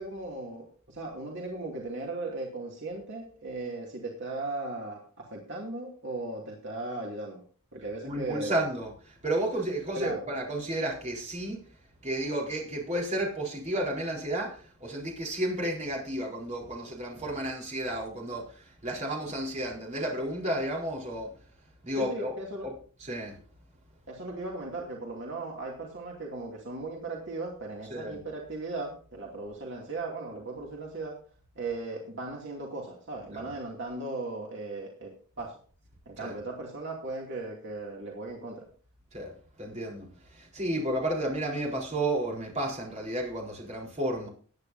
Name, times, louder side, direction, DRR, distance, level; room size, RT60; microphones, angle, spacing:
voice 1, 0.0-7.4 7.7-8.5 9.9-10.2 22.0-22.7 24.1-31.2 31.6-35.6 36.1-38.7, right 2 dB, 55° right, 2.5 m, -37 dB
voice 2, 8.0-11.6 12.0-21.3 21.8-22.4 22.6-22.7 23.0-23.4 27.9-28.2 33.3-33.5 36.2-36.3 39.1-39.3 39.6-44.3, right 1 dB, 30° right, 4.2 m, -32 dB
20.0 x 9.6 x 2.7 m
head